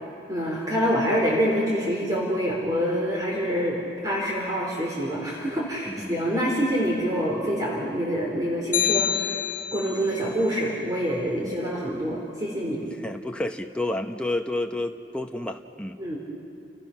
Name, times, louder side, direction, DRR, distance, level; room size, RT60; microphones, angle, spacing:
voice 1, 0.3-9.4 9.7-12.8 16.0-16.2, equal, 20° right, -3 dB, 3.9 m, -26 dB
voice 2, 5.9-6.2 11.4-11.5 13.0-16.0, left 1 dB, 5° left, 3 dB, 1.0 m, -30 dB
sound 1, 8.7-10.1, left 9 dB, 50° left, 1.2 m, -26 dB
30.0 x 29.5 x 5.9 m, 2.6 s
head